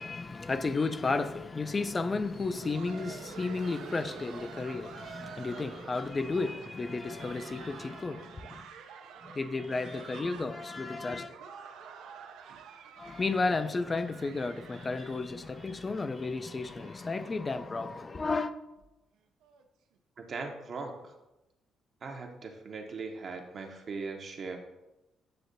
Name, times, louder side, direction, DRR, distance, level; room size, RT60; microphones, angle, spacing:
voice 1, 0.0-8.6 9.2-11.3 13.0-18.5, left 3 dB, 30° left, 0.3 m, -33 dB
Laughter, 2.2-17.8 18.1-18.2 18.8-18.9 19.4-19.6 20.7-20.8, right 6 dB, 90° right, 0.4 m, -49 dB
voice 2, 20.2-21.1 22.0-24.6, right 4 dB, 50° right, 0.6 m, -39 dB
7.5 x 2.6 x 2.6 m
cardioid pair, 90°, 0 cm